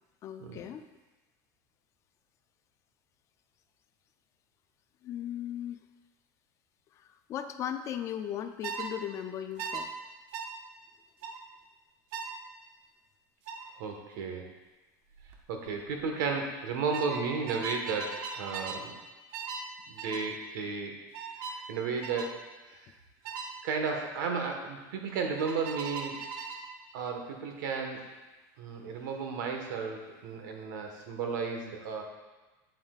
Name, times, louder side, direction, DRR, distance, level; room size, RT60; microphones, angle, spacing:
voice 1, 0.2-0.8 5.0-5.8 7.0-9.9, left 10 dB, 30° left, 8 dB, 0.4 m, -37 dB
sound 1, 8.6-8.9 9.6-9.8 10.3-10.5 11.2-11.4 12.1-12.4 13.5-13.7 15.1-15.4 15.7-16.0 16.9-18.9 19.3-19.7 20.0-20.3 21.1-21.6 22.0-22.3 23.2-23.5 25.4-26.7, right 5 dB, 55° right, 0.8 m, -38 dB
voice 2, 13.8-14.4 15.5-19.0 19.9-20.9 21.7-22.3 23.6-26.2 26.9-28.0 28.6-32.0, right 5 dB, 85° right, 3 dB, 1.4 m, -33 dB
8.8 x 8.0 x 2.4 m, 1.2 s
supercardioid pair, 160°, 10 cm